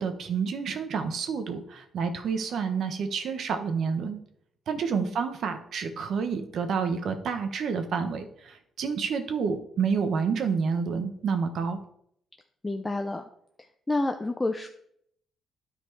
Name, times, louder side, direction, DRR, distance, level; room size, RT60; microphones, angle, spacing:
voice 1, 0.0-4.2 4.7-11.8, right 5 dB, 65° right, 8 dB, 1.1 m, -29 dB
voice 2, 12.6-13.2 13.6-14.7, left 2 dB, 20° left, 5 dB, 0.6 m, -29 dB
10.0 x 4.4 x 4.6 m, 0.69 s
cardioid pair, 90°, 0 cm